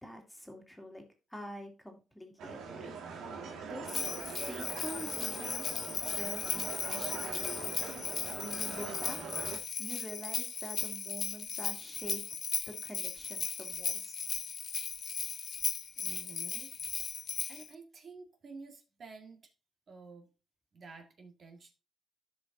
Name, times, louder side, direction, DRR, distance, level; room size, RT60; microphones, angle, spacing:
voice 1, 0.0-1.0 1.3-2.9 3.7-5.7 6.2-7.9 8.4-9.2 9.8-12.2 12.7-14.1, equal, 5° left, 2 dB, 2.3 m, -46 dB
ristorante all'aperto, 2.4-9.6, right 5 dB, 80° right, 2.0 m, -42 dB
Bell, 3.9-17.7, left 7 dB, 50° left, 0.4 m, -37 dB
voice 2, 16.0-16.7 17.0-17.2 17.5-19.5 19.9-20.3 20.7-21.7, right 4 dB, 50° right, 3 dB, 1.8 m, -51 dB
13.5 x 5.1 x 2.7 m, 0.31 s
cardioid pair, 90°, 0 cm